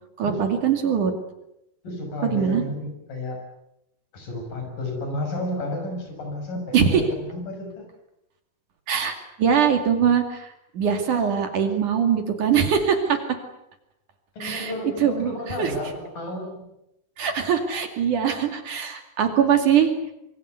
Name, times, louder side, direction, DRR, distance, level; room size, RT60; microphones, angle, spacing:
voice 1, 0.2-1.1 2.2-2.6 6.7-7.0 8.9-13.2 14.4-14.7 15.0-15.8 17.2-20.1, right 7 dB, 60° right, 5 dB, 3.8 m, -22 dB
voice 2, 1.8-3.4 4.1-7.9 14.3-16.6, left 1 dB, 60° left, 3 dB, 8.3 m, -32 dB
25.5 x 24.0 x 8.2 m, 0.85 s
omnidirectional pair, 4.3 m